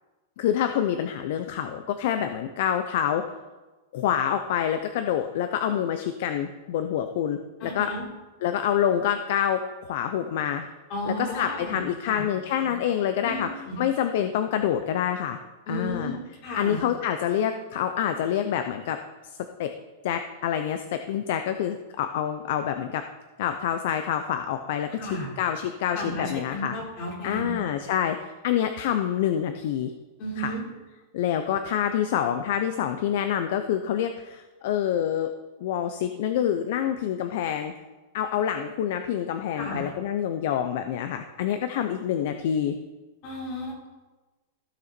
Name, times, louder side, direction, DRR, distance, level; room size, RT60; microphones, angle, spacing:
voice 1, 0.4-3.2 3.9-7.9 8.4-10.7 11.1-13.5 13.8-15.4 15.7-16.2 16.5-19.7 20.0-23.0 23.4-24.9 25.4-26.7 27.2-29.9 30.4-30.5 31.1-35.3 35.6-37.7 38.1-42.8, left 9 dB, 55° left, 8 dB, 0.6 m, -27 dB
voice 2, 7.6-8.0 10.9-12.3 12.6-12.7 13.2-13.8 15.7-16.2 16.4-16.8 25.0-25.3 25.9-27.6 30.2-30.6 39.6-39.9 43.2-43.9, equal, 35° left, -4 dB, 4.3 m, -33 dB
15.5 x 6.7 x 4.4 m, 1.2 s
supercardioid pair, 165°, 0 cm